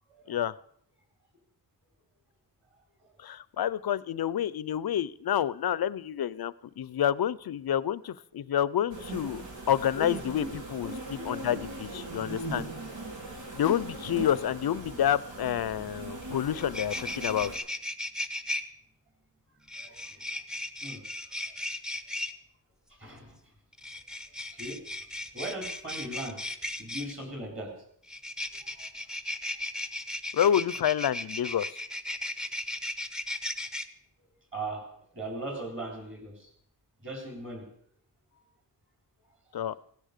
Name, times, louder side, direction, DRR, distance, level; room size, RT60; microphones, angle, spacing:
voice 1, 3.2-9.4 9.7-12.7 13.5-17.5 30.3-31.8 39.5-39.8, left 10 dB, 60° left, 19 dB, 0.6 m, -29 dB
sound 1, 8.9-17.6, right 2 dB, 90° right, 3.1 m, -40 dB
sound 2, 16.2-16.3 16.5-18.6 19.7-22.3 23.7-27.1 28.1-33.8, left 1 dB, ahead, 0.7 m, -36 dB
voice 2, 19.8-20.3 20.8-21.7 22.9-23.4 24.5-24.8 25.3-26.4 26.8-27.7 28.7-28.9 34.5-34.9 35.1-36.5 37.0-37.7 39.6-39.7, right 1 dB, 30° right, 4 dB, 3.7 m, -39 dB
16.5 x 10.0 x 6.5 m, 0.65 s
wide cardioid pair, 170°, 43 cm